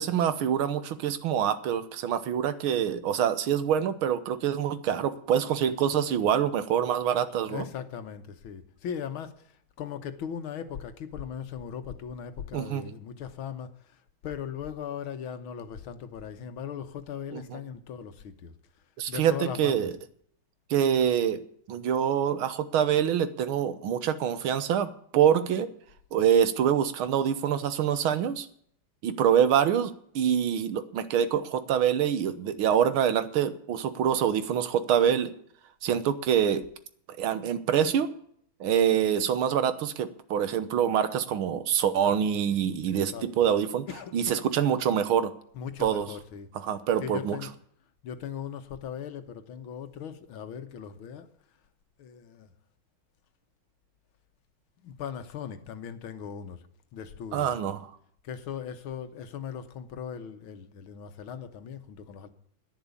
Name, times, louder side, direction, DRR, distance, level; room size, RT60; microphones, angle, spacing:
voice 1, 0.0-7.7 12.5-12.8 17.3-17.6 19.0-19.9 20.7-21.4 21.7-25.7 26.1-28.5 29.0-35.3 35.8-36.6 37.2-38.1 38.6-43.9 44.1-45.3 45.8-46.1 46.6-47.4 57.3-57.9, right 9 dB, 90° right, 1.9 m, -25 dB
voice 2, 7.5-18.5 19.1-19.8 42.9-43.5 43.9-44.5 45.5-46.5 47.0-47.5 48.0-51.3 52.0-52.5 54.8-56.6 56.9-57.5 58.2-62.3, left 8 dB, 85° left, 2.0 m, -39 dB
10.5 x 10.5 x 8.3 m
omnidirectional pair, 2.2 m